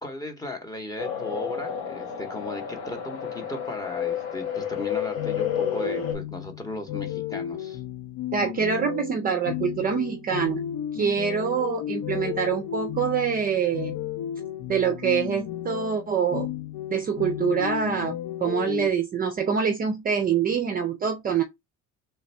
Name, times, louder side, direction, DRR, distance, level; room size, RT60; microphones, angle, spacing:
voice 1, 0.0-7.8, left 2 dB, 10° left, 0.7 m, -36 dB
sound 1, 1.0-6.1, left 8 dB, 80° left, 1.8 m, -31 dB
sound 2, 5.2-18.9, left 11 dB, 65° left, 0.5 m, -33 dB
voice 2, 8.3-10.6 10.9-13.9 14.7-16.5 16.9-21.4, right 7 dB, 25° right, 0.4 m, -25 dB
3.3 x 2.5 x 4.2 m
cardioid pair, 165°, 33 cm